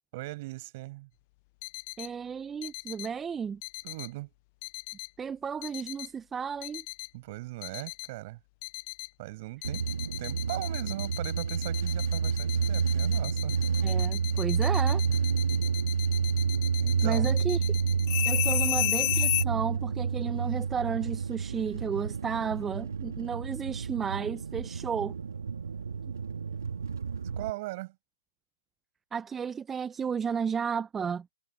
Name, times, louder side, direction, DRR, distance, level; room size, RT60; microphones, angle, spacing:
voice 1, 0.1-1.1 3.8-4.3 7.1-8.4 9.2-9.9 10.2-13.6 16.8-17.3 18.5-18.6 27.4-28.0, right 20 dB, 30° right, 6.6 m, -39 dB
sound 1, 1.6-2.1 2.6-3.1 3.6-4.1 4.6-5.1 5.6-6.1 6.6-7.1 7.6-8.1 8.6-9.1 9.6-19.4, left 24 dB, 30° left, 0.7 m, -34 dB
voice 2, 2.0-3.6 5.2-6.8 13.8-15.0 17.0-17.7 18.2-25.2 29.1-31.3, right 6 dB, 10° right, 1.0 m, -33 dB
sound 2, 9.6-27.5, right 6 dB, 60° right, 2.2 m, -29 dB
figure-of-eight pair, 140°, 2 cm